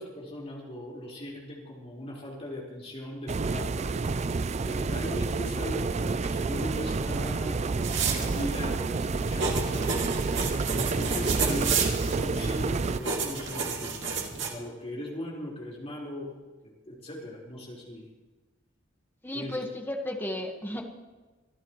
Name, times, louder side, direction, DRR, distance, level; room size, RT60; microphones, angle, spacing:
voice 1, 0.0-3.9 4.7-7.6 8.1-10.1 10.8-11.8 12.0-16.3 16.8-18.1 19.3-19.6, left 1 dB, 35° left, -4 dB, 4.6 m, -39 dB
sound 1, 3.3-13.0, right 4 dB, 35° right, 0.4 m, -29 dB
sound 2, 7.8-14.5, right 5 dB, 65° right, 2.4 m, -32 dB
voice 2, 19.2-20.9, left 1 dB, 10° left, 2 dB, 1.5 m, -34 dB
25.5 x 12.5 x 3.2 m, 1.2 s
head